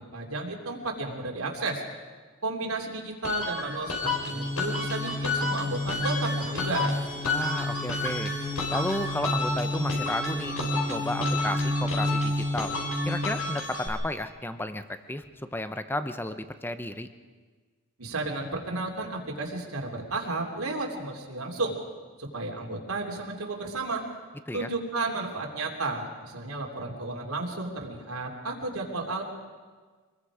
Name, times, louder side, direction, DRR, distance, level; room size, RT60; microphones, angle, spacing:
voice 1, 0.1-1.8 2.4-6.9 18.0-21.8 22.2-24.0 24.5-29.2, right 3 dB, 85° right, 0 dB, 3.2 m, -33 dB
sound 1, 3.2-13.9, left 3 dB, 75° left, 4.7 m, -32 dB
sound 2, 4.0-13.4, left 1 dB, 10° right, 2.1 m, -31 dB
voice 2, 7.2-8.3 8.7-12.7 13.1-15.2 15.5-17.1 24.5-24.7, left 1 dB, 10° left, 10 dB, 0.8 m, -33 dB
26.0 x 21.0 x 5.0 m, 1.4 s
head